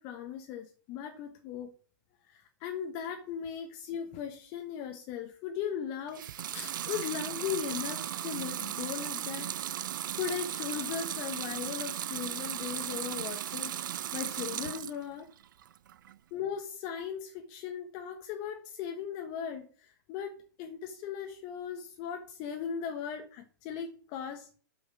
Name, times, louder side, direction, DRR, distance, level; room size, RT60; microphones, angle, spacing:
voice 1, 0.0-1.7 2.3-9.5 10.2-15.3 16.3-24.5, left 8 dB, 40° left, 5 dB, 1.3 m, -38 dB
Water tap faucet / Sink (filling or washing) / Liquid, 6.1-15.0 15.4-16.1, right 11 dB, 70° right, 0.5 m, -36 dB
8.2 x 6.2 x 6.3 m, 0.43 s
hypercardioid pair, 125°, 11 cm